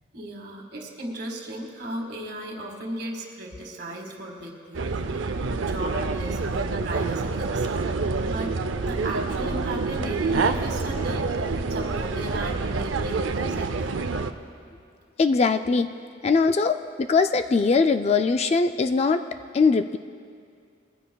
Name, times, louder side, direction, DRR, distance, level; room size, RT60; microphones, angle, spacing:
voice 1, 0.1-4.9 5.2-5.3 5.6-14.0, right 1 dB, 55° right, 1 dB, 1.8 m, -36 dB
sound 1, 4.7-14.3, right 4 dB, 70° right, 0.6 m, -27 dB
voice 2, 15.2-15.9 16.2-19.2 19.5-20.0, left 4 dB, 35° left, 8 dB, 0.3 m, -21 dB
21.5 x 15.0 x 2.3 m, 2.3 s
head